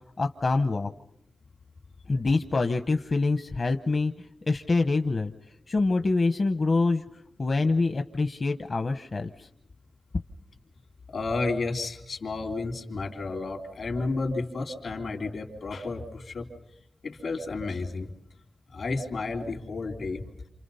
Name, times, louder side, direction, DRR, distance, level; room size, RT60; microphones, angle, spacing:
voice 1, 0.2-0.9 2.1-4.1 4.5-5.3 5.7-7.0 7.4-9.5, left 3 dB, 50° left, 6 dB, 0.9 m, -25 dB
voice 2, 11.1-16.5 17.0-18.1 18.7-20.3, left 3 dB, 80° left, 3 dB, 3.3 m, -32 dB
28.5 x 28.0 x 5.6 m, 0.77 s
wide cardioid pair, 90°, 0 cm